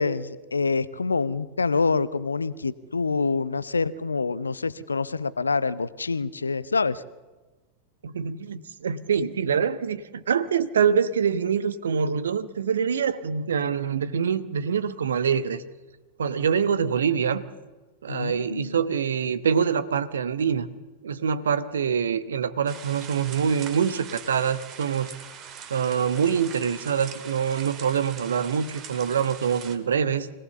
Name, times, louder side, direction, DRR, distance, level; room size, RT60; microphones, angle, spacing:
voice 1, 0.0-7.0 18.1-18.7, left 4 dB, 75° left, 17 dB, 0.7 m, -26 dB
voice 2, 8.0-15.6 16.2-17.4 18.0-20.7 21.0-25.1 25.7-30.3, right 7 dB, 65° right, 13 dB, 1.0 m, -25 dB
sound 1, 22.7-29.8, right 8 dB, 35° right, 2.0 m, -42 dB
25.0 x 17.5 x 7.1 m, 1.2 s
figure-of-eight pair, 90°, 0 cm